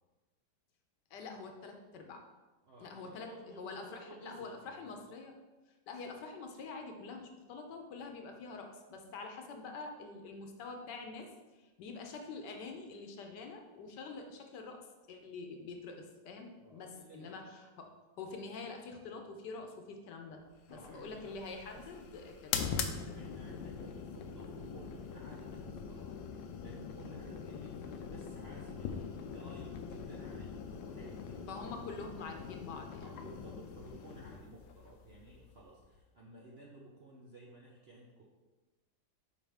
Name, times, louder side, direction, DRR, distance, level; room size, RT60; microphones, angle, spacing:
voice 1, 1.1-2.2 2.8-5.3 5.9-11.3 11.6-17.9 18.2-20.4 20.7-22.6 31.5-33.1, left 4 dB, 70° left, 4 dB, 1.3 m, -46 dB
voice 2, 2.6-5.0 16.6-17.4 20.7-21.4 21.7-22.0 23.1-31.7 33.0-38.2, right 2 dB, 55° right, -3 dB, 0.7 m, -55 dB
sound 1, 20.7-36.0, left 6 dB, 85° left, 1.4 m, -43 dB
7.2 x 5.1 x 3.5 m, 1.2 s
omnidirectional pair, 2.0 m